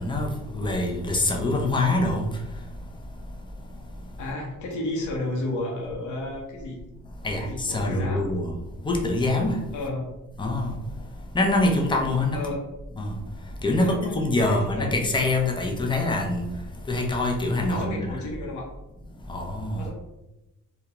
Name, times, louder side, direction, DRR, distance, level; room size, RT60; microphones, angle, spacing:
voice 1, 0.0-2.3 7.2-8.5 8.9-9.6 10.4-10.7 11.3-12.4 13.0-13.1 13.6-16.4 16.9-18.2 19.3-19.8, left 2 dB, 15° left, 1 dB, 0.5 m, -24 dB
voice 2, 4.2-6.8 7.4-8.3 9.7-10.1 12.3-12.6 13.8-15.0 17.7-18.7 19.7-19.9, left 2 dB, 80° left, -1 dB, 0.9 m, -32 dB
2.5 x 2.2 x 2.9 m, 0.96 s
cardioid pair, 90°, 30 cm